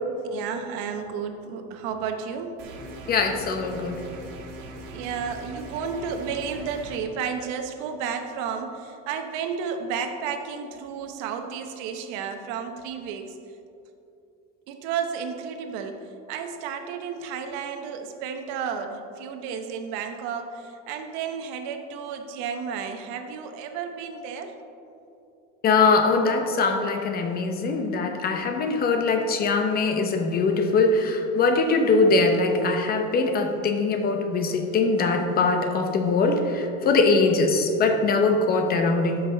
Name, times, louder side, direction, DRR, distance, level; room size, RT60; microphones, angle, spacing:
voice 1, 0.2-2.5 4.9-13.4 14.7-24.5, right 6 dB, 65° right, 6 dB, 0.9 m, -32 dB
sound 1, 2.6-7.0, right 1 dB, 80° right, 1.6 m, -40 dB
voice 2, 3.1-4.0 25.6-39.2, left 3 dB, 30° left, 5 dB, 0.8 m, -22 dB
12.5 x 5.7 x 3.9 m, 2.7 s
cardioid pair, 160°, 31 cm